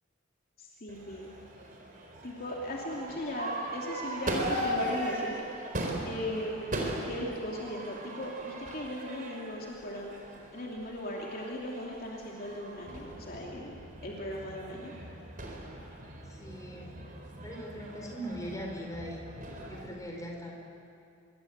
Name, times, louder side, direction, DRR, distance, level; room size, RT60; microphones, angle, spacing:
voice 1, 0.6-1.3 2.2-5.4 6.0-10.1 10.5-15.0, equal, 45° left, -2 dB, 2.8 m, -38 dB
Crowd / Fireworks, 0.9-19.9, right 1 dB, 40° right, 4.1 m, -39 dB
voice 2, 16.3-16.9 17.4-19.3 19.6-20.5, equal, 15° left, 0 dB, 4.4 m, -40 dB
26.0 x 22.5 x 8.1 m, 2.5 s
head